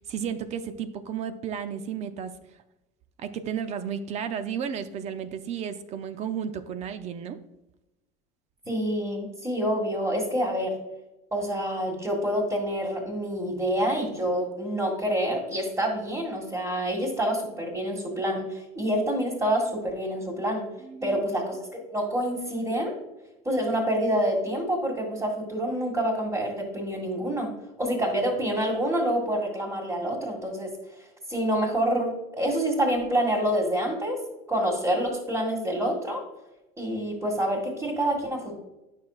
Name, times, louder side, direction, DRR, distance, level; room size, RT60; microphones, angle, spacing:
voice 1, 0.0-2.3 3.2-7.4 20.8-21.2, right 8 dB, 40° right, 10 dB, 0.6 m, -33 dB
voice 2, 8.6-10.7 11.3-20.6 21.0-22.9 23.4-27.5 27.8-30.7 31.3-34.2 34.5-36.2 36.8-38.5, equal, 15° right, -5 dB, 1.8 m, -27 dB
9.3 x 6.3 x 2.4 m, 0.95 s
supercardioid pair, 120°, 17 cm